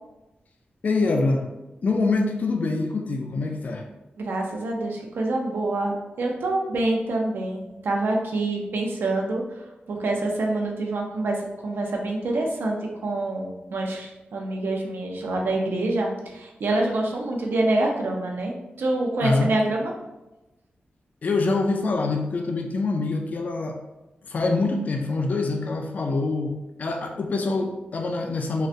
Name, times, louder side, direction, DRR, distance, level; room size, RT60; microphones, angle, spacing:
voice 1, 0.8-1.4 1.8-3.8 19.2-19.5 21.2-23.8 24.3-28.7, left 3 dB, 50° left, 3 dB, 0.3 m, -25 dB
voice 2, 4.2-9.4 9.9-12.8 13.0-19.9, right 2 dB, 80° right, 0 dB, 0.6 m, -26 dB
3.8 x 2.1 x 2.5 m, 1.0 s
wide cardioid pair, 125°, 4 cm